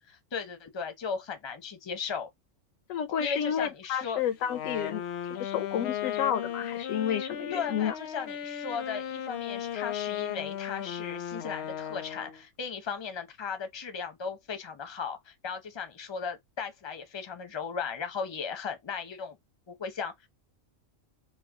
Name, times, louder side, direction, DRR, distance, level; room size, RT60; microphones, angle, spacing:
voice 1, 0.1-2.3 3.2-4.2 7.5-19.4 19.7-20.1, left 6 dB, 30° left, 0.6 m, -36 dB
voice 2, 2.9-5.0 5.3-7.9, left 9 dB, 85° left, 1.0 m, -30 dB
Wind instrument woodwind instrument, 4.4-12.4, left 10 dB, 65° left, 0.7 m, -36 dB
3.0 x 2.2 x 3.5 m
omnidirectional pair, 1.4 m